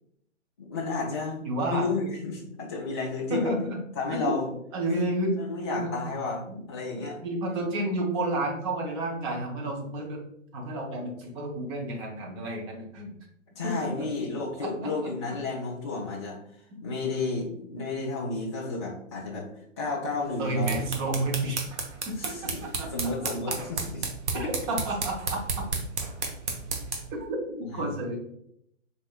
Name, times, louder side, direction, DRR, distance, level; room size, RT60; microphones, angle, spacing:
voice 1, 0.6-3.5 3.9-4.5 4.9-5.1 5.4-7.2 13.6-16.4 16.8-19.5 19.8-20.8 22.2-24.1 24.3-24.5 27.6-27.9, left 3 dB, 25° left, -5 dB, 0.3 m, -32 dB
voice 2, 1.4-1.8 3.3-3.8 4.1-4.4 4.7-5.3 5.6-5.9 6.5-6.6 7.2-10.2 10.5-13.1 13.6-14.1 14.6-15.1 20.4-21.7 22.1-22.3 22.8-22.9 24.3-25.7 27.1-28.2, right 2 dB, 25° right, 0 dB, 0.7 m, -31 dB
sound 1, 20.4-27.2, right 4 dB, 60° right, 0.9 m, -33 dB
4.3 x 3.4 x 2.3 m, 0.74 s
figure-of-eight pair, 120°, 39 cm